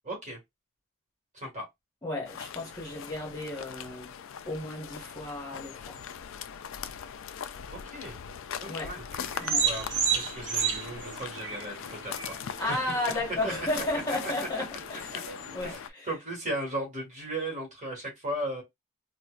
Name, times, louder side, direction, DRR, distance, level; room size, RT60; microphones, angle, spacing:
voice 1, 0.0-0.4 1.3-1.7 7.7-8.2 8.6-9.0 9.6-12.9 13.4-13.5 13.9-14.6 15.6-18.6, right 1 dB, 35° right, 1.6 m, -36 dB
voice 2, 2.0-4.1 4.5-6.0 8.7-8.9 9.4-9.7 12.6-15.7, left 2 dB, 15° left, 1.1 m, -33 dB
sound 1, 2.2-15.9, left 8 dB, 65° left, 0.3 m, -41 dB
sound 2, 9.1-15.8, right 6 dB, 55° right, 0.8 m, -33 dB
4.2 x 2.1 x 2.4 m
head